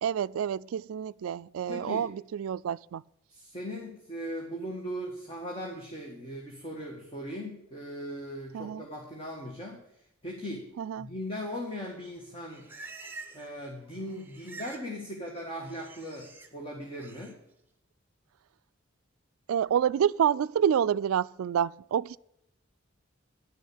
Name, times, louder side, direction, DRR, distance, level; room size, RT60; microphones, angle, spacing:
voice 1, 0.0-3.0 8.5-8.8 10.8-11.1 19.5-22.2, right 8 dB, 75° right, 0.3 m, -28 dB
voice 2, 1.7-2.0 3.3-10.7 11.0-12.7 13.3-17.4, equal, 25° left, 1.9 m, -39 dB
Livestock farm animals working animals, 12.2-13.6 13.8-14.9 15.2-16.5 16.9-17.3, right 3 dB, 10° right, 1.2 m, -47 dB
11.0 x 6.5 x 8.0 m
head